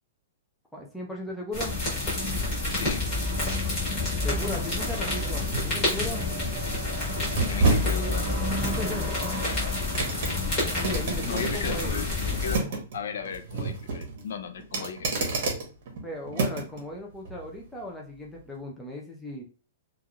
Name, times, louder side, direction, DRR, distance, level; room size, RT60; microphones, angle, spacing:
voice 1, 0.7-1.7 4.2-6.2 8.6-9.3 10.8-11.9 16.0-19.4, left 1 dB, 5° left, -2 dB, 0.4 m, -36 dB
sound 1, 1.5-12.6, left 2 dB, 20° left, 1.2 m, -28 dB
sound 2, 2.1-16.8 17.2-17.4, right 3 dB, 40° right, 0.9 m, -32 dB
voice 2, 2.7-3.1 7.5-8.3 11.2-15.4, left 6 dB, 60° left, 7 dB, 0.4 m, -36 dB
3.0 x 2.4 x 2.4 m, 0.36 s
hypercardioid pair, 180°, 0 cm